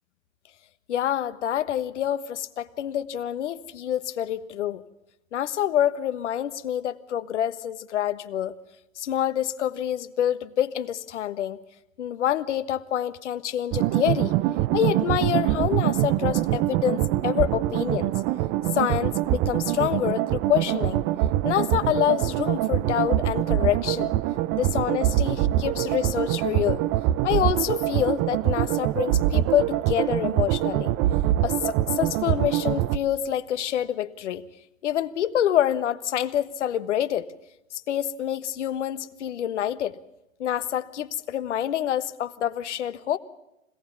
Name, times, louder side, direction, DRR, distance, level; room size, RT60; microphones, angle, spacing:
voice 1, 0.9-4.8 5.3-8.5 9.0-11.6 12.0-14.3 14.7-18.1 18.7-21.0 21.4-24.1 24.5-26.8 27.2-30.9 31.4-34.4 34.8-37.3 37.7-40.0 40.4-43.2, left 10 dB, 60° left, 14 dB, 1.4 m, -27 dB
sound 1, 13.7-33.0, right 14 dB, 30° right, 0.7 m, -24 dB
26.0 x 17.5 x 7.1 m, 0.90 s
figure-of-eight pair, 105°, 40 cm